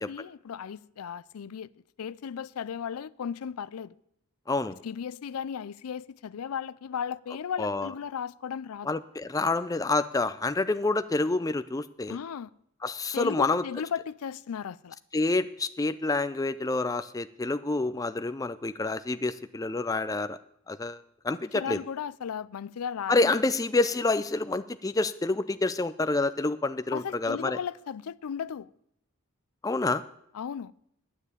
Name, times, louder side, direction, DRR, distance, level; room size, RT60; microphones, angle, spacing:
voice 1, 0.0-1.7 2.0-3.9 4.8-8.9 12.1-12.5 13.1-15.0 21.5-23.5 26.9-28.7 30.3-30.7, left 7 dB, 85° left, 0.4 m, -35 dB
voice 2, 4.5-4.8 7.6-7.9 8.9-12.2 12.8-13.6 15.1-20.4 20.7-21.8 23.1-27.6 29.6-30.0, left 3 dB, 15° left, 0.4 m, -28 dB
9.9 x 9.1 x 8.2 m
head